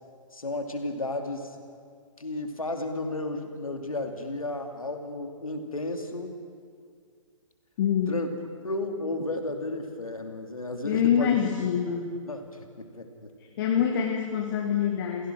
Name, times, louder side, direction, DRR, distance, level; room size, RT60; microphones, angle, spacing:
voice 1, 0.3-1.6 2.2-6.4 8.1-8.3 8.6-11.3 12.2-12.5 12.8-13.3, left 2 dB, 75° left, 5 dB, 2.6 m, -33 dB
voice 2, 7.8-8.2 10.8-12.2 13.6-15.3, left 8 dB, 40° left, 2 dB, 1.9 m, -25 dB
28.0 x 17.0 x 6.2 m, 2.1 s
figure-of-eight pair, 125°, 18 cm